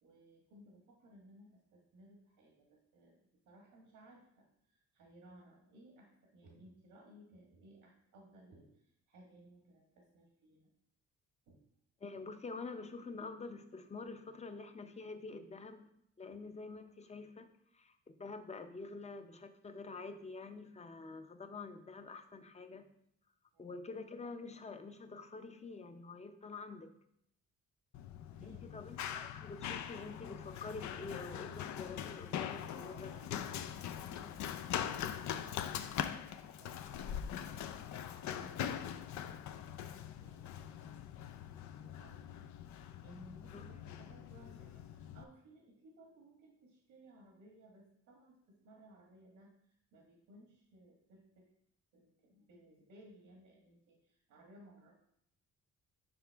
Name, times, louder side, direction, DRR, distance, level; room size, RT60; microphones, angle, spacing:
voice 1, 0.0-10.7 11.5-11.7 16.3-16.4 23.5-23.7 28.0-28.9 32.6-36.3 36.5-37.8 38.2-42.3 43.0-51.5 51.9-54.9, right 1 dB, 85° right, 0 dB, 1.4 m, -61 dB
voice 2, 12.0-15.9 16.2-22.9 23.6-27.0 28.4-33.2 43.5-43.6, left 3 dB, 20° left, 8 dB, 0.6 m, -47 dB
Run, 27.9-45.2, left 9 dB, 70° left, 0.5 m, -42 dB
7.0 x 4.8 x 3.4 m, 0.74 s
cardioid pair, 90°, 30 cm